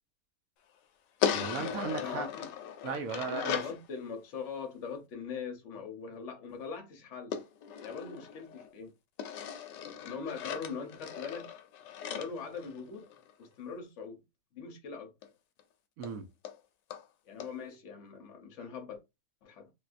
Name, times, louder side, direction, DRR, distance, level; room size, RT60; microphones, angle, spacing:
sound 1, 1.2-3.8 7.3-8.7 9.2-13.3 15.2-15.3 15.6-15.7 16.0-16.1 16.4-16.6 16.9-17.0 17.4-17.5, left 8 dB, 75° left, 1.1 m, -37 dB
voice 1, 1.3-2.3 2.8-3.6 16.0-16.2, right 5 dB, 75° right, 0.8 m, -36 dB
voice 2, 1.9-2.5 3.3-7.4 7.8-8.9 10.0-11.5 12.1-13.1 13.4-14.2 14.5-15.1 17.2-19.0 19.4-19.7, left 5 dB, 50° left, 0.9 m, -41 dB
3.5 x 2.6 x 2.5 m
omnidirectional pair, 2.1 m